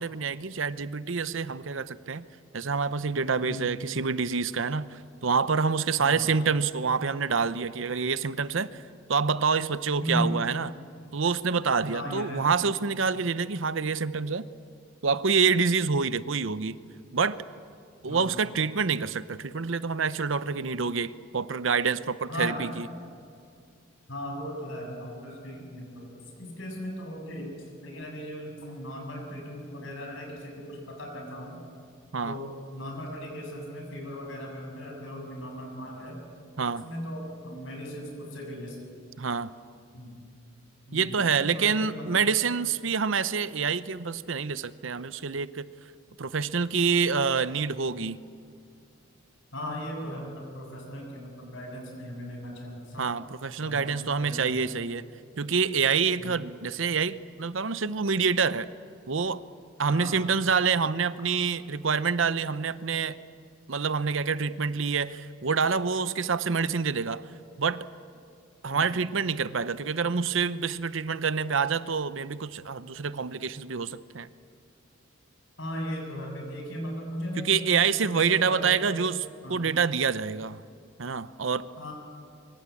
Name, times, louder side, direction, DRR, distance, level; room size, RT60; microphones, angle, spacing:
voice 1, 0.0-2.2 2.5-8.8 9.1-10.7 11.1-14.4 15.0-16.8 17.1-17.4 18.0-22.9 32.1-32.4 36.6-36.9 39.2-39.5 40.9-45.7 46.2-48.2 53.0-55.0 55.4-58.7 59.1-59.4 59.8-63.2 63.7-67.3 67.6-67.9 68.6-74.3 77.4-79.2 79.5-80.6 81.0-81.7, right 5 dB, 65° right, 15 dB, 0.8 m, -27 dB
voice 2, 3.4-3.7 6.0-6.3 10.0-10.3 11.9-12.4 18.1-18.3 22.3-22.6 24.1-27.5 27.8-31.6 32.2-36.2 36.8-38.8 39.9-40.2 40.9-42.0 49.5-53.0 53.6-54.8 56.2-56.4 59.9-60.2 68.7-68.8 75.6-78.9 79.4-79.7 81.8-81.9, equal, 65° left, 2 dB, 7.1 m, -37 dB
24.5 x 24.5 x 8.5 m, 2.3 s
head